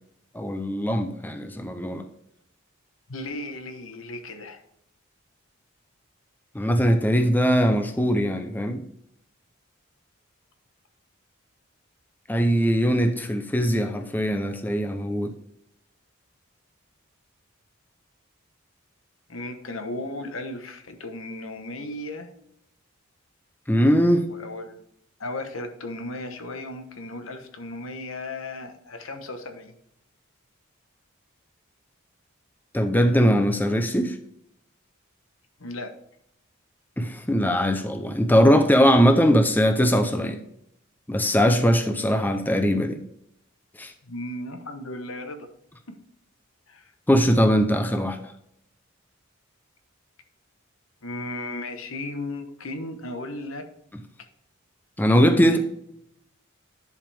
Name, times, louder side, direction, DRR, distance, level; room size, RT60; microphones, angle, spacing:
voice 1, 0.3-2.0 6.5-8.8 12.3-15.3 23.7-24.3 32.7-34.2 37.0-40.4 41.1-43.0 43.8-43.9 47.1-48.2 55.0-55.6, equal, 10° left, 7 dB, 0.5 m, -21 dB
voice 2, 3.1-4.6 19.3-22.3 24.3-24.8 25.2-29.8 35.6-35.9 44.0-45.5 45.9-46.0 46.7-46.9 51.0-53.7 55.5-55.6, left 2 dB, 75° left, 7 dB, 1.1 m, -35 dB
10.5 x 5.1 x 3.4 m, 0.75 s
head